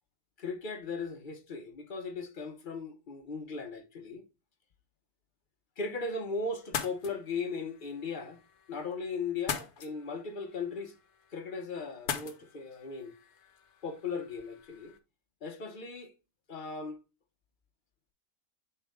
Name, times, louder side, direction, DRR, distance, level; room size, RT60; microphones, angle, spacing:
voice 1, 0.4-4.2 5.8-8.4 8.7-10.9 11.3-13.1 13.8-14.9 15.4-16.1 16.5-17.0, left 4 dB, 40° left, 0.9 m, -37 dB
sound 1, 6.6-15.0, left 8 dB, 75° left, 1.4 m, -43 dB
7.1 x 4.5 x 3.5 m
omnidirectional pair, 1.6 m